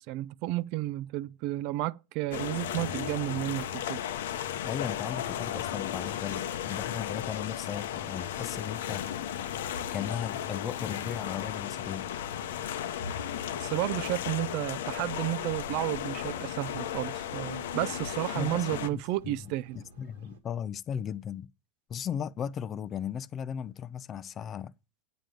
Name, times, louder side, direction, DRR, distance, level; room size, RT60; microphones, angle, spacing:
voice 1, 0.0-4.0 13.5-19.8, right 17 dB, 55° right, 0.4 m, -32 dB
sound 1, 2.3-18.9, left 10 dB, 85° left, 0.8 m, -35 dB
voice 2, 4.6-9.0 9.9-12.1 18.4-19.4 19.8-21.5 21.9-24.7, left 8 dB, 30° left, 0.5 m, -36 dB
sound 2, 14.6-20.4, right 4 dB, 85° right, 2.0 m, -56 dB
9.1 x 7.6 x 5.1 m
supercardioid pair, 130°, 0 cm